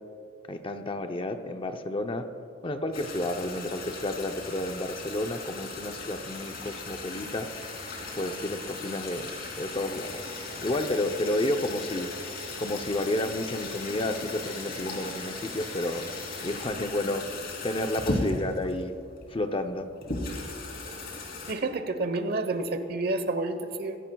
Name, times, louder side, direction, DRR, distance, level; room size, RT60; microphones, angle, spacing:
voice 1, 0.5-2.3 2.6-7.5 8.1-10.2 10.6-12.1 12.6-16.1 16.4-17.3 17.6-18.9 19.3-19.9, left 1 dB, 25° left, 7 dB, 0.6 m, -31 dB
sound 1, 2.9-21.5, left 2 dB, 50° left, 2.9 m, -37 dB
voice 2, 21.5-24.0, right 2 dB, 50° right, 9 dB, 1.0 m, -29 dB
23.5 x 16.0 x 2.3 m, 2.9 s
head